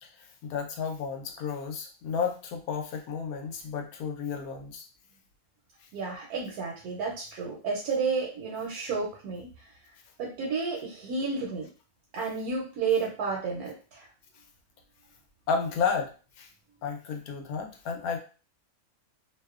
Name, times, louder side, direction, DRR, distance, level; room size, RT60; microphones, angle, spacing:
voice 1, 0.0-4.9 15.5-16.1 16.4-16.5 16.8-18.2, left 6 dB, 80° left, 3 dB, 1.1 m, -32 dB
voice 2, 5.9-9.5 10.2-11.7 12.1-14.1, right 4 dB, 90° right, -2 dB, 1.1 m, -31 dB
2.7 x 2.0 x 2.3 m, 0.36 s
omnidirectional pair, 1.5 m